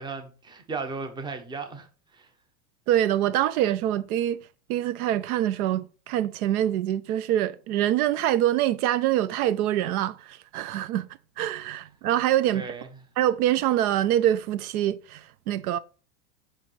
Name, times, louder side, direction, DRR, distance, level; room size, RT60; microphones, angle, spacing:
voice 1, 0.0-2.3 12.5-12.9, right 4 dB, 10° right, 0.7 m, -36 dB
voice 2, 2.9-4.4 4.7-11.1 11.4-12.6 13.2-15.8, right 12 dB, 70° right, 0.6 m, -25 dB
5.7 x 5.5 x 3.1 m
supercardioid pair, 135°, 45 cm